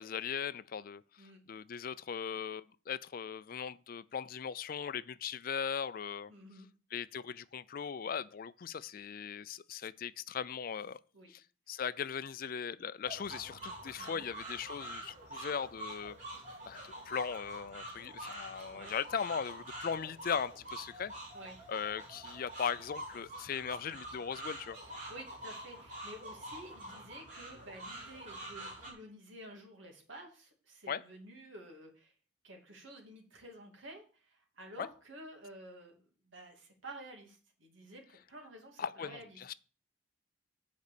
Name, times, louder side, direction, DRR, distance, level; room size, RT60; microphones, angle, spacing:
voice 1, 0.0-6.3 6.9-11.0 11.3-16.2 16.7-21.1 21.7-24.8 30.9-31.0 34.8-34.9 38.8-39.5, left 7 dB, 50° left, 0.4 m, -39 dB
voice 2, 6.3-6.7 11.1-11.3 14.0-14.2 18.7-18.9 21.3-21.6 24.8-32.1 32.4-39.4, right 1 dB, 85° right, 2.7 m, -51 dB
sound 1, 13.0-28.9, right 1 dB, 40° right, 3.4 m, -46 dB
8.1 x 5.2 x 6.8 m
head